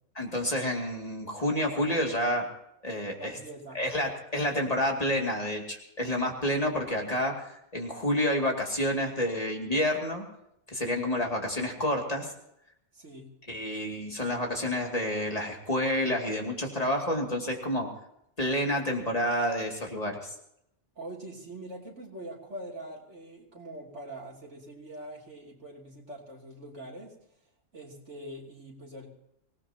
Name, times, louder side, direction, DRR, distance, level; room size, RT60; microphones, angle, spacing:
voice 1, 0.2-2.5 2.8-3.4 3.7-10.2 10.7-12.3 13.5-17.9 18.4-20.3, left 1 dB, 35° left, 0 dB, 2.7 m, -29 dB
voice 2, 3.2-3.9 12.9-13.3 20.9-27.2 27.7-29.1, right 1 dB, 85° right, -1 dB, 3.4 m, -43 dB
25.0 x 18.0 x 2.9 m, 0.77 s
omnidirectional pair, 1.2 m